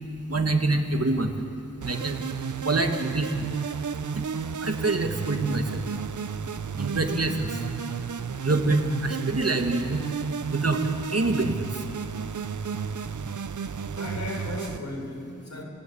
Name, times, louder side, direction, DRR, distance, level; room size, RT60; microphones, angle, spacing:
voice 1, 0.3-1.3 1.8-2.2 2.7-3.3 4.6-5.8 6.8-7.5 8.4-10.0 10.5-10.8 11.1-11.7, right 2 dB, 50° right, 5 dB, 1.8 m, -25 dB
sound 1, 1.8-14.8, right 6 dB, 70° right, 0.7 m, -32 dB
voice 2, 13.9-15.6, left 1 dB, 60° left, 1 dB, 4.8 m, -35 dB
26.0 x 17.0 x 8.6 m, 2.5 s
wide cardioid pair, 75°, 31 cm